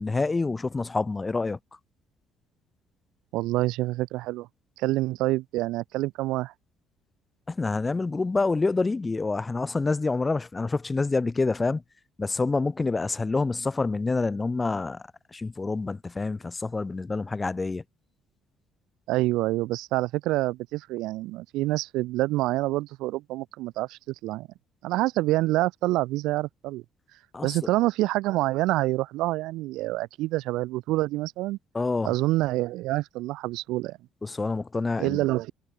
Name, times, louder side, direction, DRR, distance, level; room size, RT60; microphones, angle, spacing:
voice 1, 0.0-1.6 7.5-11.8 12.2-15.0 15.3-17.8 27.3-27.5 31.7-32.1 34.2-35.2, left 3 dB, 15° left, 0.7 m, -27 dB
voice 2, 3.3-4.5 4.8-6.5 19.1-24.5 24.8-26.8 27.4-31.6 32.0-34.0 35.0-35.5, right 18 dB, 85° right, 0.7 m, -27 dB
cardioid pair, 130°, 0 cm